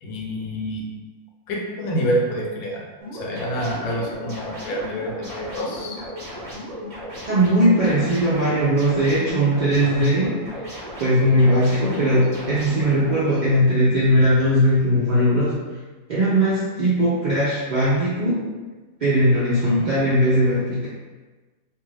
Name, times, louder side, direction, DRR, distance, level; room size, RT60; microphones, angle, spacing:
voice 1, 0.0-0.8 1.5-2.8 3.1-6.0 11.8-12.1 19.6-19.9, equal, 75° left, -2 dB, 1.1 m, -27 dB
sound 1, 3.0-13.1, equal, 35° right, 0.6 m, -35 dB
voice 2, 7.3-10.4 11.0-15.6 16.1-18.4 19.0-20.9, equal, 75° right, -8 dB, 0.4 m, -19 dB
2.6 x 2.4 x 3.1 m, 1.3 s
omnidirectional pair, 1.5 m